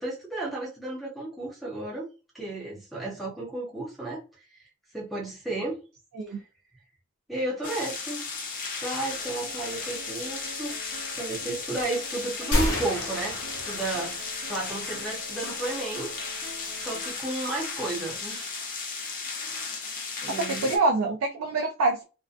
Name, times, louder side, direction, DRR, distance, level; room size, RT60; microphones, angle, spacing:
voice 1, 0.0-2.1 2.3-4.6 4.9-5.8 6.3-6.4 7.3-10.8 11.1-16.1 16.8-18.6 20.2-20.8, right 2 dB, ahead, 0.6 m, -33 dB
sound 1, 7.6-20.8, left 4 dB, 40° left, 0.6 m, -35 dB
Acoustic guitar, 9.1-17.1, right 1 dB, 30° right, 1.0 m, -46 dB
sound 2, 12.5-14.4, left 1 dB, 70° left, 1.0 m, -29 dB
voice 2, 20.3-22.0, right 3 dB, 75° right, 0.4 m, -26 dB
2.6 x 2.1 x 2.4 m
head